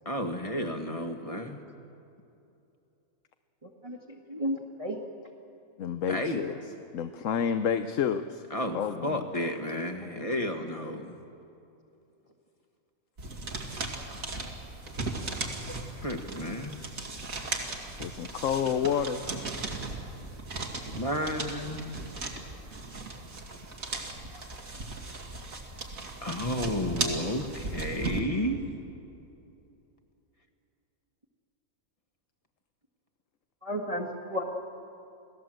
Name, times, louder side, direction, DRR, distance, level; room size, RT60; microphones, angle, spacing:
voice 1, 0.1-1.7 6.1-6.4 8.5-11.2 16.0-16.8 21.0-21.9 26.2-28.6, left 1 dB, 25° left, 5 dB, 1.7 m, -32 dB
voice 2, 4.3-5.0 33.6-34.4, equal, 25° right, -2 dB, 1.7 m, -32 dB
voice 3, 5.8-6.6 6.9-8.4 8.7-9.3 18.0-19.2, left 8 dB, 65° left, 9 dB, 1.1 m, -29 dB
sound 1, 13.2-28.2, right 3 dB, 70° right, 2.7 m, -37 dB
29.0 x 18.5 x 7.7 m, 2.7 s
omnidirectional pair, 1.5 m